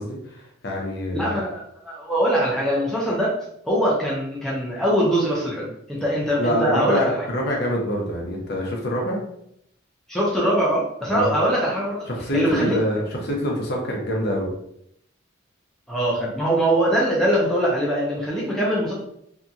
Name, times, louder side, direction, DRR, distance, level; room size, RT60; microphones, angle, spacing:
voice 1, 0.0-1.4 6.4-9.2 11.1-11.3 12.1-14.5, equal, 50° left, -1 dB, 0.7 m, -26 dB
voice 2, 1.1-3.3 3.7-7.3 10.1-12.0 12.3-12.8 15.9-18.9, right 1 dB, ahead, -6 dB, 0.6 m, -22 dB
2.7 x 2.7 x 2.3 m, 0.72 s
head